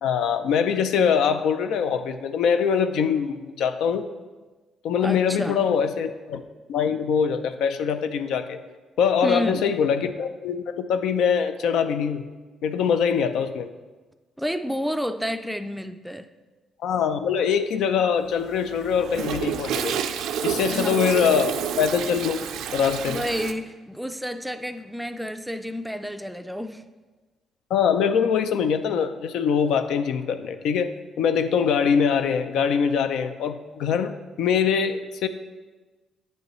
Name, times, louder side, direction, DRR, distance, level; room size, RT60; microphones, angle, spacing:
voice 1, 0.0-4.1 4.8-6.4 6.7-8.6 9.0-12.2 12.6-13.7 16.8-20.0 20.4-22.4 22.7-23.3 27.7-35.3, left 7 dB, 80° left, 9 dB, 0.4 m, -23 dB
voice 2, 5.0-5.6 9.2-9.6 14.4-16.3 20.7-21.0 23.1-26.8, equal, 5° right, 9 dB, 0.4 m, -30 dB
Toilet flush, 18.3-23.5, right 8 dB, 85° right, 0.4 m, -29 dB
8.8 x 5.3 x 3.1 m, 1.3 s
cardioid pair, 90°, 0 cm